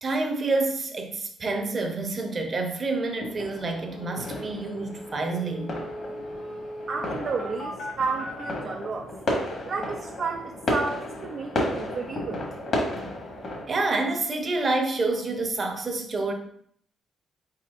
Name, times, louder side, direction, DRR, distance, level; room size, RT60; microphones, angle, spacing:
voice 1, 0.0-5.7 13.7-16.3, right 3 dB, 40° right, 4 dB, 0.8 m, -28 dB
sound 1, 3.2-13.7, left 1 dB, 55° left, 1.4 m, -33 dB
sound 2, 3.6-3.7 3.9-8.5, equal, 85° left, 1.3 m, -39 dB
voice 2, 6.9-9.1 9.6-12.5, right 4 dB, 55° right, 1 dB, 0.4 m, -32 dB
4.3 x 4.3 x 2.5 m, 0.63 s
cardioid pair, 90°, 0 cm